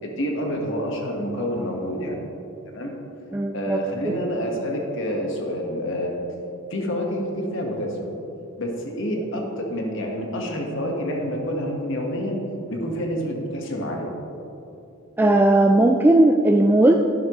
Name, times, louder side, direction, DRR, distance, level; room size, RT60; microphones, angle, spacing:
voice 1, 0.0-2.2 2.7-2.9 3.5-6.2 6.7-8.1 8.6-12.4 12.7-14.1, equal, 65° left, 0 dB, 1.5 m, -28 dB
voice 2, 3.3-3.8 4.0-4.1 15.2-16.9, right 1 dB, 10° right, 2 dB, 0.3 m, -17 dB
11.5 x 10.5 x 3.1 m, 2.8 s
head